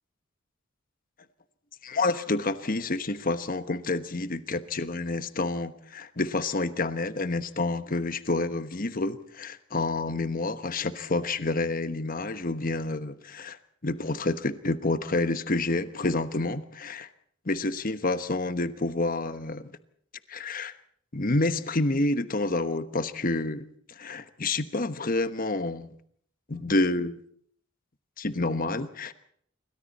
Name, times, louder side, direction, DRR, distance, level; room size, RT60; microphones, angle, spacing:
voice 1, 1.8-13.6 13.8-17.1 17.4-19.7 20.3-20.8 21.1-25.9 26.5-27.2 28.2-29.1, left 2 dB, 45° left, 1.2 m, -28 dB
28.0 x 24.0 x 4.2 m
head